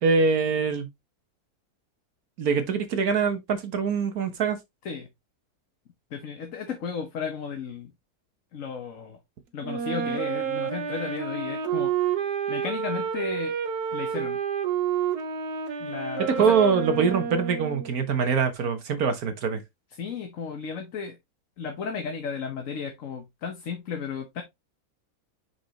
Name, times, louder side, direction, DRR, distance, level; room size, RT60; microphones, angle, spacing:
voice 1, 0.0-0.9 2.4-4.6 16.3-19.6, right 5 dB, 70° right, 1.6 m, -24 dB
voice 2, 6.1-7.9 8.5-9.2 9.5-11.9 12.5-13.5 13.9-14.4 15.8-16.5 20.0-21.2 21.6-24.4, left 6 dB, 60° left, 1.4 m, -34 dB
Wind instrument woodwind instrument, 9.6-18.0, right 8 dB, 90° right, 1.6 m, -29 dB
6.0 x 5.7 x 2.9 m
omnidirectional pair, 1.6 m